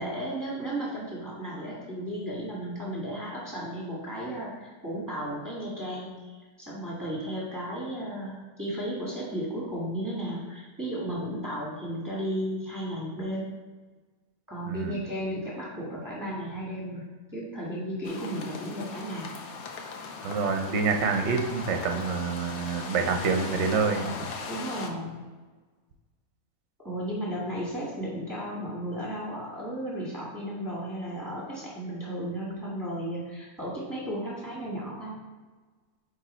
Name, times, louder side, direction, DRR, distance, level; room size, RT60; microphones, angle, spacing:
voice 1, 0.0-13.5 14.5-17.0 17.3-19.3 24.5-25.2 26.8-35.2, right 1 dB, 15° right, -7 dB, 1.6 m, -34 dB
voice 2, 14.7-15.0 20.2-24.2, right 5 dB, 55° right, 4 dB, 1.0 m, -27 dB
sound 1, 18.0-24.9, left 4 dB, 80° left, 1.2 m, -38 dB
9.1 x 3.3 x 4.3 m, 1.3 s
omnidirectional pair, 1.5 m